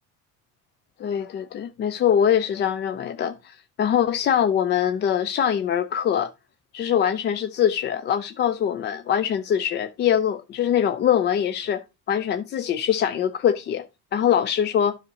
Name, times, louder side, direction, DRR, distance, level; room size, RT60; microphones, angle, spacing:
voice 1, 1.0-6.3 6.7-13.9 14.1-15.0, left 9 dB, 25° left, 0.3 m, -23 dB
12.0 x 5.6 x 2.7 m
hypercardioid pair, 60°, 46 cm